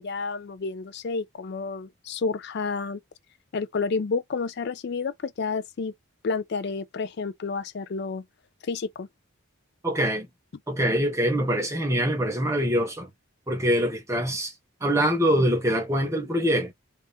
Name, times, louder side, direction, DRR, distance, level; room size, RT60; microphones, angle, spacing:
voice 1, 0.0-3.0 3.5-5.9 6.2-8.2 8.6-9.1, left 4 dB, 50° left, 0.4 m, -30 dB
voice 2, 9.8-10.3 10.7-13.1 13.5-14.5 14.8-16.7, equal, 15° right, 0.8 m, -24 dB
3.4 x 2.5 x 4.1 m
head